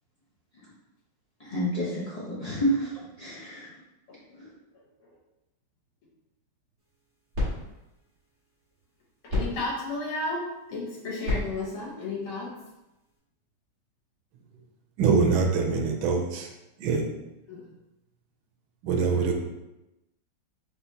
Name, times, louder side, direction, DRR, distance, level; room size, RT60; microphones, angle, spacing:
voice 1, 1.4-2.9 3.2-3.7 4.4-4.5, equal, 45° left, -8 dB, 0.4 m, -29 dB
sound 1, 6.8-13.2, left 2 dB, 45° right, 2.1 m, -36 dB
voice 2, 9.2-12.5 17.5-17.7, left 2 dB, 80° left, -3 dB, 1.9 m, -33 dB
voice 3, 15.0-16.5 16.8-17.0 18.8-19.3, right 5 dB, 85° right, 3 dB, 1.4 m, -24 dB
4.4 x 3.5 x 2.7 m, 0.96 s
omnidirectional pair, 2.2 m